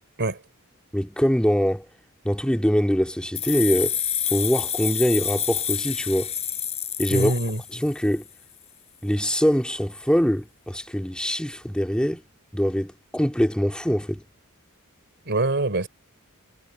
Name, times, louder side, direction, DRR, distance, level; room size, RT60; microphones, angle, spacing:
voice 1, 0.9-1.9 2.2-4.0 4.3-6.3 7.0-7.3 7.7-8.2 9.0-12.2 12.5-14.2, equal, 5° left, 2.1 m, -23 dB
sound 1, 3.3-8.1, left 8 dB, 30° left, 4.8 m, -28 dB
voice 2, 7.1-7.6 15.3-15.9, right 2 dB, 50° right, 3.5 m, -24 dB
head